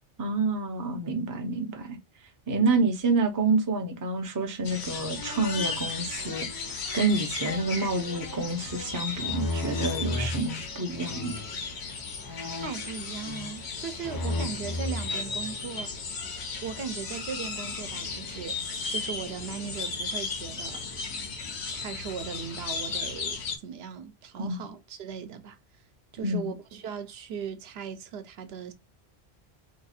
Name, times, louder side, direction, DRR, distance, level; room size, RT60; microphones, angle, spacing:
voice 1, 0.2-2.0 2.5-11.4 24.4-24.5 26.2-26.5, right 3 dB, 25° right, 0.4 m, -28 dB
sound 1, 4.6-23.6, left 4 dB, 90° left, 1.1 m, -35 dB
sound 2, 5.2-10.4 11.1-11.6 12.2-13.7 14.0-16.0, left 2 dB, 30° left, 0.4 m, -36 dB
voice 2, 12.6-15.9 16.6-20.8 21.7-25.6 26.1-28.7, right 7 dB, 75° right, 0.8 m, -38 dB
2.8 x 2.4 x 4.1 m
omnidirectional pair, 1.1 m